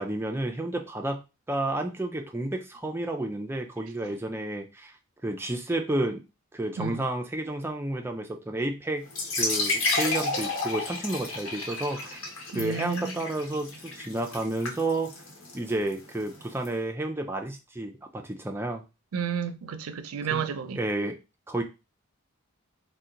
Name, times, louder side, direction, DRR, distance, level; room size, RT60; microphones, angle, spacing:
voice 1, 0.0-5.0 5.2-6.2 6.5-9.1 9.4-12.2 12.5-15.1 15.5-18.8 20.3-20.4 20.8-21.2 21.5-21.6, right 1 dB, 10° right, 0.3 m, -31 dB
sound 1, 9.1-16.7, left 2 dB, 70° left, 1.1 m, -32 dB
voice 2, 12.5-13.1 19.1-20.8, right 7 dB, 90° right, 0.4 m, -31 dB
2.8 x 2.1 x 3.7 m
head